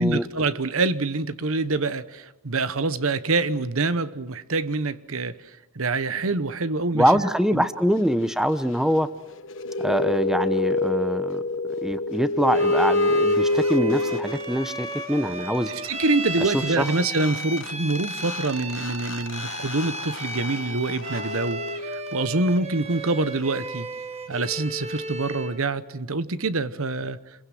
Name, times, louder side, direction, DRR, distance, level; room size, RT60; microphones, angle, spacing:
voice 1, 0.0-5.4 5.7-7.2 7.5-7.6 15.7-23.9 24.3-27.2, right 3 dB, 75° right, 15 dB, 1.1 m, -26 dB
voice 2, 6.9-9.1 9.8-11.4 11.8-15.7 16.5-16.8, equal, ahead, 12 dB, 0.8 m, -24 dB
sound 1, 9.3-14.7 16.6-16.7 16.9-22.4, left 2 dB, 60° left, 1.2 m, -27 dB
Bowed string instrument, 12.5-25.6, right 1 dB, 30° right, 1.6 m, -35 dB
28.0 x 22.5 x 7.8 m, 0.99 s
head